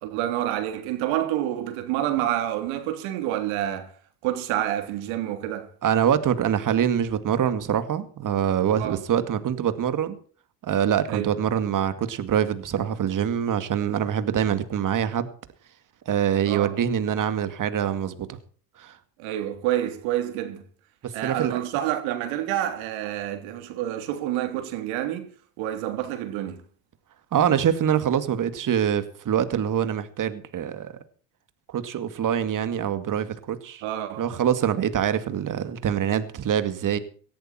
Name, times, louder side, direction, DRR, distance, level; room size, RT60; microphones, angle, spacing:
voice 1, 0.0-3.9 4.2-5.7 8.8-9.0 11.1-11.3 16.5-16.8 19.2-20.6 21.1-25.3 25.6-26.6 33.8-34.3, right 12 dB, 70° right, 3.4 m, -28 dB
voice 2, 5.8-10.2 10.6-15.3 16.1-18.4 18.8-19.0 21.0-21.6 27.3-30.9 31.7-33.8 34.2-37.0, right 9 dB, 40° right, 2.2 m, -24 dB
18.0 x 14.0 x 4.4 m
supercardioid pair, 95°, 49 cm